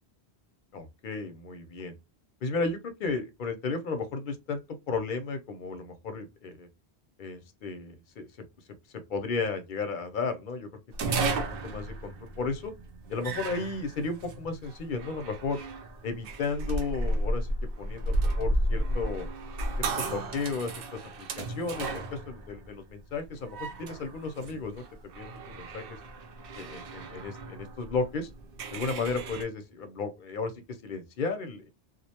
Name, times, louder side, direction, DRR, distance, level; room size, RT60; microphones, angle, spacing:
voice 1, 0.7-1.9 2.4-4.6 4.9-6.7 7.2-8.3 9.1-10.7 11.0-11.3 11.6-12.7 13.1-15.6 16.0-17.5 17.8-19.3 19.8-26.0 26.6-28.3 28.7-31.7, left 4 dB, 60° left, 0.7 m, -34 dB
sound 1, 10.9-29.4, right 2 dB, 65° right, 0.7 m, -34 dB
2.4 x 2.1 x 2.8 m
omnidirectional pair, 1.0 m